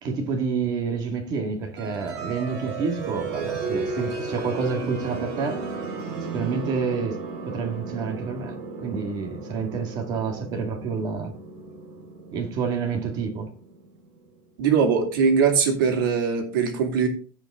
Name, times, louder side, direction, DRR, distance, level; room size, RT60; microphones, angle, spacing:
voice 1, 0.0-5.7 6.3-11.3 12.3-13.5, right 5 dB, 35° right, 1.9 m, -29 dB
sound 1, 1.8-14.3, right 4 dB, 55° right, 2.6 m, -34 dB
voice 2, 14.6-17.1, right 6 dB, 80° right, 2.6 m, -21 dB
15.5 x 5.2 x 3.6 m
supercardioid pair, 155°, 11 cm